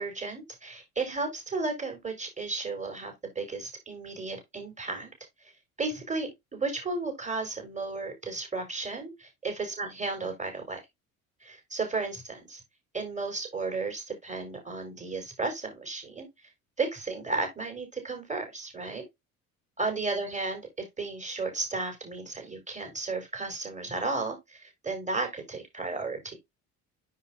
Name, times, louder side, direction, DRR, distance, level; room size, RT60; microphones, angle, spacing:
voice 1, 0.0-5.1 5.4-5.5 5.8-10.8 11.4-12.6 12.9-16.3 16.8-19.1 19.8-26.4, right 3 dB, 15° right, 4.6 m, -34 dB
9.7 x 4.8 x 2.6 m
figure-of-eight pair, 55°, 42 cm